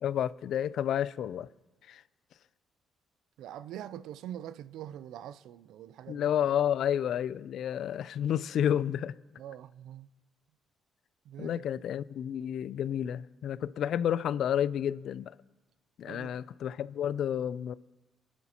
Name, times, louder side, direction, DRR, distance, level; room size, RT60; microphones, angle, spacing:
voice 1, 0.0-1.5 1.9-2.0 6.1-9.1 11.4-15.3 16.0-17.7, left 10 dB, 70° left, 0.3 m, -30 dB
voice 2, 3.4-6.2 9.4-10.1 11.3-11.6 16.0-16.4, right 11 dB, 85° right, 0.4 m, -44 dB
25.0 x 11.5 x 2.9 m
cardioid pair, 90°, 0 cm